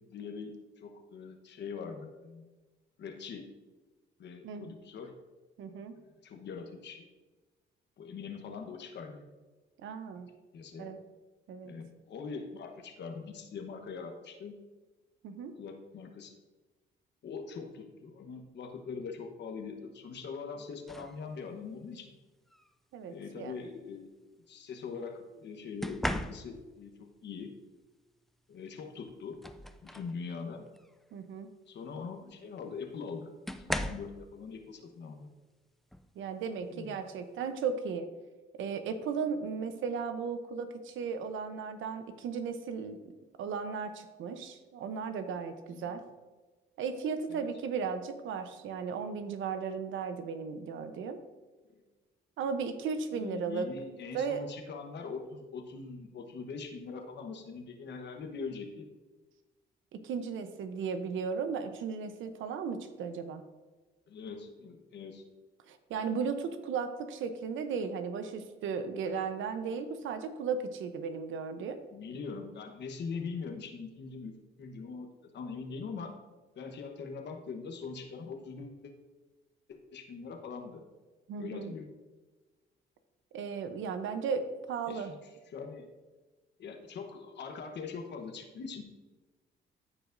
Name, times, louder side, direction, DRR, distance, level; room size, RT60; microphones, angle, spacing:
voice 1, 0.0-2.5 3.0-3.5 4.2-5.1 6.2-7.1 8.0-9.3 10.5-10.9 11.6-14.6 15.5-16.3 17.2-22.1 23.1-24.1 24.5-26.9 27.2-27.5 28.5-29.4 29.8-30.7 31.7-33.3 33.6-35.3 36.7-37.0 45.7-46.0 47.3-47.5 51.7-51.8 53.1-58.9 64.1-65.2 71.9-74.3 74.6-75.1 75.3-76.1 76.5-78.9 79.7-80.8 81.4-81.9 84.9-85.2 85.5-85.9 86.6-88.8, left 5 dB, 60° left, 4 dB, 1.1 m, -42 dB
voice 2, 5.6-6.0 9.8-10.3 10.8-11.0 11.5-11.7 15.2-15.5 22.9-23.5 31.1-31.5 36.2-38.1 38.6-43.1 43.4-46.0 46.8-51.2 52.4-53.7 54.1-54.4 59.9-63.4 65.7-71.8 81.3-81.7 83.3-85.1, right 5 dB, 80° right, 9 dB, 0.8 m, -36 dB
sound 1, 20.9-21.2 22.5-22.7 25.8-26.8 28.5-28.6 29.1-30.2 30.7-30.9 32.3-32.4 33.5-34.2 35.9-36.1 36.6-36.9, equal, ahead, 0.4 m, -37 dB
14.0 x 5.0 x 2.6 m, 1.3 s
cardioid pair, 90°, 20 cm